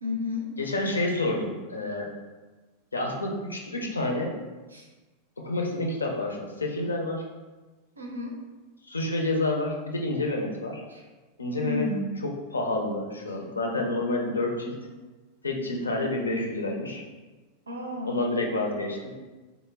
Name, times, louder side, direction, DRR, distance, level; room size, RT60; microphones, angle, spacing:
voice 1, 0.0-0.5 4.7-4.9 8.0-8.4 10.9-11.0 11.6-12.2 13.3-13.4 17.7-18.2, left 2 dB, 75° right, 0 dB, 0.5 m, -32 dB
voice 2, 0.6-2.1 2.9-4.4 5.4-7.2 8.9-10.8 11.4-11.9 12.5-14.8 15.4-17.0 18.0-19.1, left 2 dB, 75° left, 1 dB, 0.5 m, -29 dB
3.0 x 2.1 x 3.4 m, 1.2 s
figure-of-eight pair, 90°, 0 cm